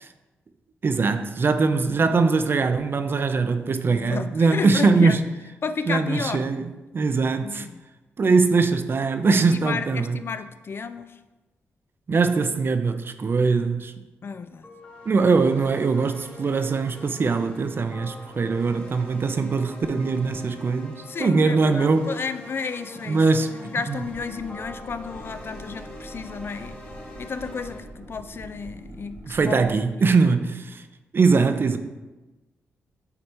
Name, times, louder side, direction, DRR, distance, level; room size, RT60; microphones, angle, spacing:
voice 1, 0.8-5.2 5.9-7.7 8.2-10.2 12.1-13.9 15.1-22.1 23.1-24.0 29.3-30.8 31.1-31.8, right 4 dB, 45° right, 0.5 m, -22 dB
voice 2, 3.9-5.2 5.6-6.5 7.4-7.8 9.3-11.1 14.2-14.7 21.0-26.8 27.2-29.7, left 5 dB, 50° left, 0.4 m, -32 dB
sound 1, 14.6-27.8, left 2 dB, 25° left, 1.7 m, -44 dB
sound 2, 23.9-29.8, right 2 dB, 85° right, 1.4 m, -43 dB
7.8 x 2.9 x 4.4 m
cardioid pair, 65°, 5 cm